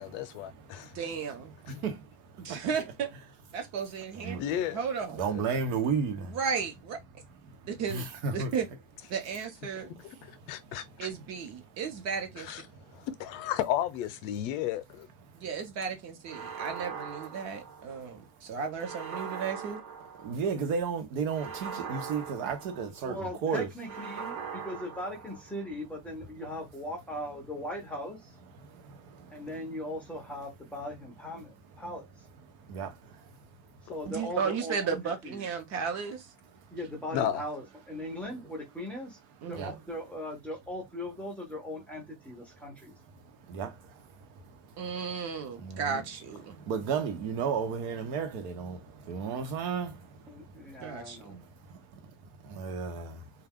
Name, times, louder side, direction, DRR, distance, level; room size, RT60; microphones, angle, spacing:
voice 1, 0.0-0.9 1.7-1.8 4.4-4.8 5.3-5.4 10.0-10.2 10.5-11.1 12.4-12.6 12.9-15.1 33.9-34.0 37.1-37.4, left 11 dB, 80° left, 0.6 m, -33 dB
voice 2, 0.9-1.5 2.4-3.1 3.5-5.2 6.2-7.0 7.7-8.0 8.3-8.7 9.1-9.9 11.0-12.5 15.3-19.8 34.0-36.3 38.2-38.3 39.4-39.8 44.8-46.6 50.8-51.4, right 6 dB, 45° right, 0.7 m, -34 dB
voice 3, 5.1-6.3 7.9-8.5 20.2-23.7 32.7-32.9 39.6-39.7 43.5-43.7 45.6-46.0 46.7-48.8 49.1-49.9 52.6-53.1, right 6 dB, 85° right, 0.9 m, -32 dB
sound 1, 16.3-18.1 18.8-20.6 21.3-23.2 23.8-25.7, right 6 dB, 60° right, 1.0 m, -41 dB
voice 4, 23.0-28.3 29.3-32.1 33.8-35.0 35.2-35.5 36.7-39.2 39.5-42.9 50.3-51.4, left 1 dB, 5° left, 0.4 m, -39 dB
2.4 x 2.2 x 3.5 m
cardioid pair, 175°, 39 cm